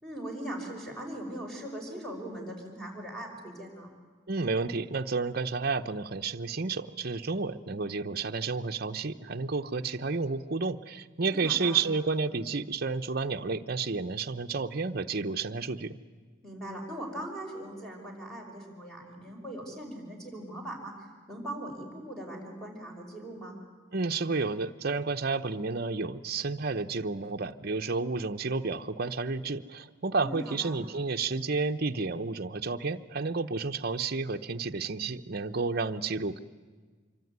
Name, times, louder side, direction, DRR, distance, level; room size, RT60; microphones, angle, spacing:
voice 1, 0.0-3.9 11.2-11.8 16.4-23.6 30.2-30.8, right 1 dB, 5° left, 0 dB, 5.4 m, -40 dB
voice 2, 4.3-16.0 23.9-36.4, right 4 dB, 50° right, 6 dB, 0.9 m, -31 dB
25.5 x 23.5 x 9.5 m, 1.4 s
head